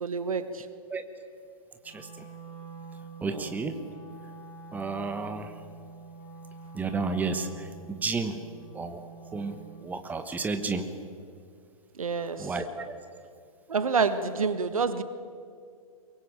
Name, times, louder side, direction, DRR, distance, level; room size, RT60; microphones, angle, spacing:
voice 1, 0.0-0.7 3.3-3.5 12.0-12.5 13.7-15.0, right 5 dB, 70° right, 1.5 m, -28 dB
Wind instrument woodwind instrument, 1.8-9.8, right 4 dB, 45° left, 7.9 m, -46 dB
voice 2, 3.2-3.8 4.7-5.5 6.7-8.4 8.7-9.0 9.3-9.6 9.8-10.9 12.4-12.9, right 4 dB, 10° right, 1.3 m, -32 dB
23.0 x 23.0 x 7.7 m
figure-of-eight pair, 115°, 19 cm